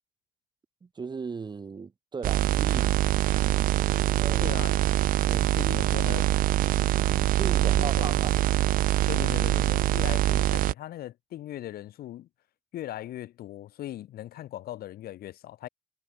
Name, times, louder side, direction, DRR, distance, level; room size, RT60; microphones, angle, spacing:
voice 1, 0.8-3.0 4.2-4.5 5.2-6.0 6.3-8.4, right 5 dB, 25° right, 1.3 m, -38 dB
sound 1, 2.2-10.7, right 14 dB, 55° right, 0.4 m, -24 dB
voice 2, 4.4-4.8 5.5-6.3 7.6-8.1 9.1-12.3 12.7-15.7, left 13 dB, 65° left, 1.4 m, -39 dB
cardioid pair, 110°, 17 cm